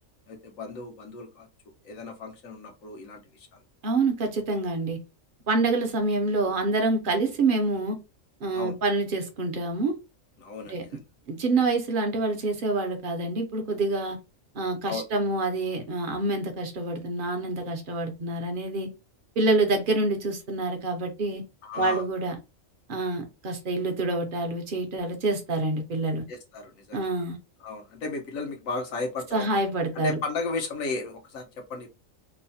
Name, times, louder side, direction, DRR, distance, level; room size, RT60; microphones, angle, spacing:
voice 1, 0.3-1.5 1.8-3.6 8.5-8.8 10.4-11.0 14.8-15.1 21.6-22.0 26.3-27.1 27.6-29.4 29.9-31.9, left 3 dB, 85° left, 1.2 m, -35 dB
voice 2, 3.8-5.0 5.5-8.0 8.4-10.0 10.7-10.9 11.3-14.2 14.5-18.9 19.4-21.4 21.8-22.3 22.9-26.3 26.9-27.4 29.3-30.1, right 2 dB, 55° right, 0.6 m, -27 dB
3.1 x 2.0 x 2.6 m
omnidirectional pair, 1.4 m